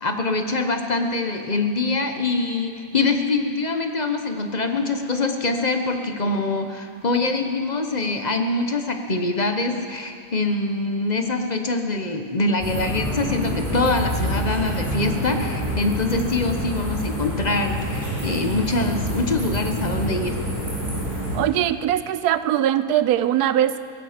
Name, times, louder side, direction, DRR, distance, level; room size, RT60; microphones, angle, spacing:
voice 1, 0.0-20.4, left 3 dB, 35° left, 5 dB, 0.9 m, -24 dB
sound 1, 12.6-21.4, equal, 30° right, 4.6 m, -27 dB
voice 2, 21.3-23.8, right 11 dB, 85° right, 13 dB, 1.1 m, -21 dB
17.0 x 16.0 x 5.0 m, 2.2 s
omnidirectional pair, 1.6 m